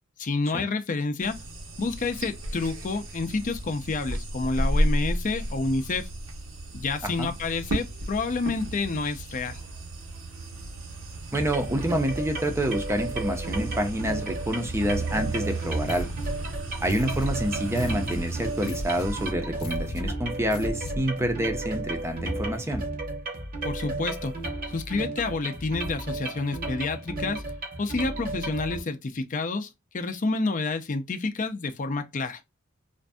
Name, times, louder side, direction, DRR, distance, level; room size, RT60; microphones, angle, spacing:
voice 1, 0.2-1.4 1.8-6.1 6.7-9.6 23.6-24.3 24.7-27.4 27.8-32.4, left 3 dB, 40° left, 0.5 m, -29 dB
sound 1, 1.2-19.3, right 1 dB, 75° right, 1.0 m, -33 dB
voice 2, 11.3-16.1 16.8-22.8, right 1 dB, 15° right, 0.5 m, -28 dB
sound 2, 11.3-28.8, right 2 dB, 45° right, 0.9 m, -34 dB
sound 3, 15.8-21.2, left 1 dB, 85° left, 0.7 m, -36 dB
2.5 x 2.5 x 2.2 m
head